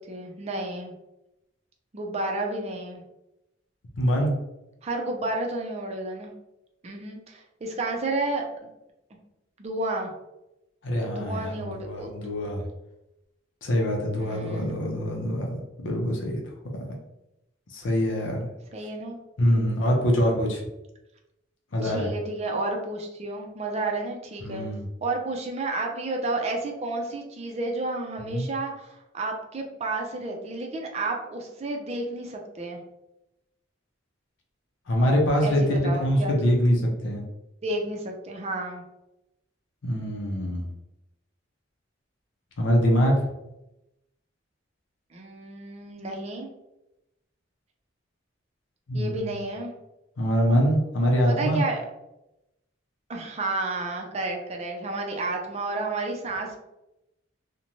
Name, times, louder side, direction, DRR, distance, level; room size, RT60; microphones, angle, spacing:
voice 1, 0.1-0.9 1.9-3.0 4.8-6.3 6.8-8.7 9.6-10.1 11.1-12.1 14.1-14.7 18.7-19.2 21.8-24.6 25.0-32.8 35.4-36.3 37.6-38.8 45.1-46.5 48.9-49.8 51.3-51.8 53.1-56.6, right 2 dB, 35° right, 2 dB, 0.4 m, -31 dB
voice 2, 3.9-4.4 10.8-12.6 13.6-15.5 15.8-16.4 17.7-18.5 19.4-20.6 21.7-22.1 24.4-24.9 28.3-28.5 34.9-37.2 39.8-40.7 42.6-43.2 48.9-49.2 50.2-51.6, equal, 75° left, 0 dB, 0.6 m, -24 dB
2.6 x 2.1 x 2.9 m, 0.91 s
head